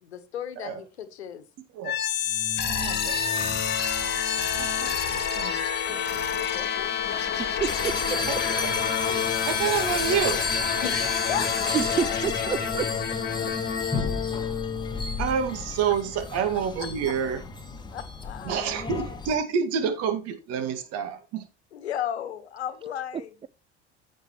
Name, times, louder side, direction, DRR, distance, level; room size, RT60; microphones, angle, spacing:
voice 1, 0.0-1.4 6.5-6.9 10.8-11.5 15.8-15.9 16.8-17.1 17.9-18.7 21.7-23.3, left 9 dB, 70° left, 1.3 m, -35 dB
sound 1, 1.8-15.7, left 7 dB, 30° left, 2.0 m, -28 dB
voice 2, 2.7-3.2 4.6-5.6 8.3-8.7 9.0-10.4 15.2-17.4 18.5-21.4, right 7 dB, 45° right, 2.0 m, -28 dB
voice 3, 7.4-7.9 11.7-12.9, right 8 dB, 15° right, 0.4 m, -28 dB
sound 2, 7.7-19.3, left 3 dB, 15° left, 1.8 m, -33 dB
15.0 x 5.4 x 3.1 m
figure-of-eight pair, 70°, 34 cm